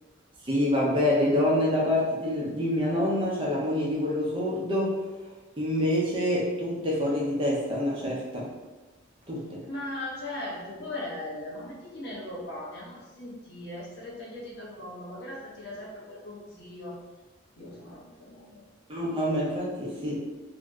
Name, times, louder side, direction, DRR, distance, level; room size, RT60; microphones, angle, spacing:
voice 1, 0.4-4.9 5.6-8.5 9.3-9.6 18.9-20.2, left 1 dB, 25° right, -5 dB, 0.6 m, -26 dB
voice 2, 9.6-17.0 17.6-18.6, left 1 dB, 55° left, -4 dB, 0.8 m, -39 dB
2.6 x 2.1 x 3.4 m, 1.2 s
head